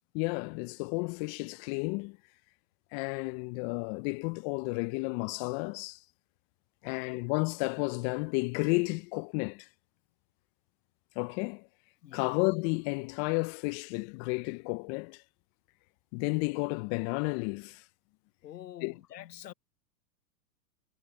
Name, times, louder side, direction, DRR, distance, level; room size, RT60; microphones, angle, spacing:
voice 1, 0.1-2.2 2.9-6.0 6.8-9.7 11.2-11.7 12.1-15.2 16.1-17.8 18.8-19.0, left 30 dB, 35° left, 0.5 m, -32 dB
voice 2, 6.8-7.2 12.0-12.4 18.4-19.5, left 12 dB, 80° left, 0.9 m, -47 dB
hypercardioid pair, 110°, 48 cm